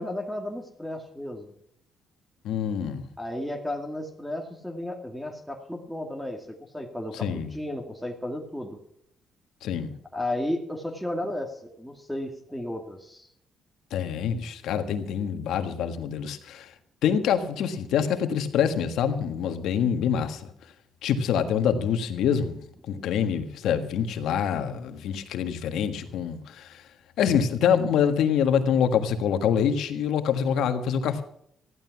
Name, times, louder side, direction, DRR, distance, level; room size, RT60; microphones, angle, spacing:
voice 1, 0.0-1.5 3.2-8.8 10.1-13.3, left 1 dB, ahead, 3 dB, 2.2 m, -33 dB
voice 2, 2.4-3.1 7.1-7.5 9.6-9.9 13.9-16.7 17.0-20.5 21.0-22.6 22.9-26.8 27.2-31.2, left 8 dB, 80° left, 8 dB, 1.6 m, -25 dB
14.5 x 11.5 x 6.0 m, 0.71 s
cardioid pair, 90°, 0 cm